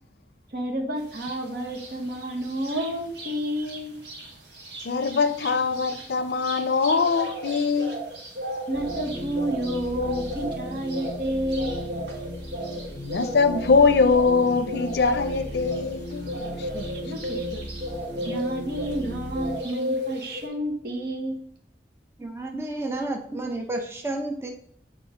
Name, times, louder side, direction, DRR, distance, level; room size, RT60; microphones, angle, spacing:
voice 1, 0.5-3.9 8.7-11.8 16.7-17.7 18.2-21.4, equal, 55° right, 1.1 m, -30 dB
sound 1, 1.1-1.3 1.7-3.3 3.6-3.8 4.0-19.1 19.3-20.4, equal, 80° right, 1.5 m, -34 dB
voice 2, 4.8-7.9 13.0-16.7, left 4 dB, 70° left, 0.5 m, -22 dB
sound 2, 8.7-19.6, equal, 25° left, 1.1 m, -37 dB
voice 3, 22.2-24.5, right 2 dB, 15° right, 0.6 m, -31 dB
6.0 x 3.3 x 5.0 m
head